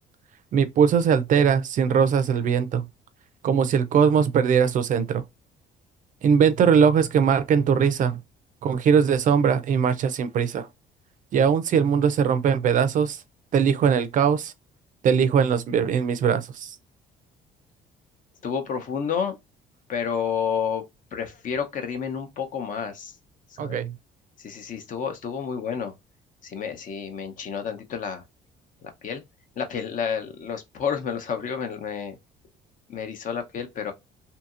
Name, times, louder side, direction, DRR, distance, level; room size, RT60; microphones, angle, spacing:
voice 1, 0.5-2.9 3.4-5.2 6.2-8.2 8.6-10.7 11.3-13.2 13.5-14.5 15.0-16.8 23.6-24.0, right 7 dB, 50° right, 0.5 m, -21 dB
voice 2, 18.4-19.4 19.9-20.8 21.1-23.2 23.5-23.8 24.4-25.9 26.4-28.2 28.8-29.2 29.6-32.2 32.9-33.9, left 7 dB, 50° left, 0.8 m, -30 dB
2.8 x 2.7 x 2.4 m
cardioid pair, 110°, 17 cm